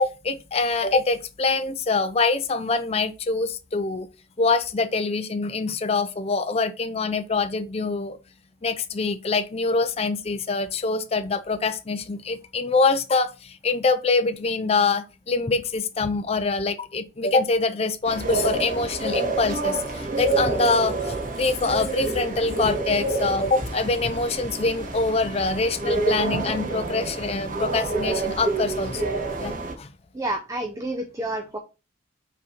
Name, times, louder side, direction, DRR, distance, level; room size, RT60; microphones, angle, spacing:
voice 1, 0.0-4.1 4.4-8.2 8.6-29.1 29.4-29.9, left 3 dB, 30° left, 0.5 m, -24 dB
sound 1, 18.0-29.7, right 3 dB, 45° right, 1.3 m, -28 dB
voice 2, 30.1-31.6, right 1 dB, 15° right, 0.6 m, -29 dB
5.4 x 3.9 x 5.0 m
head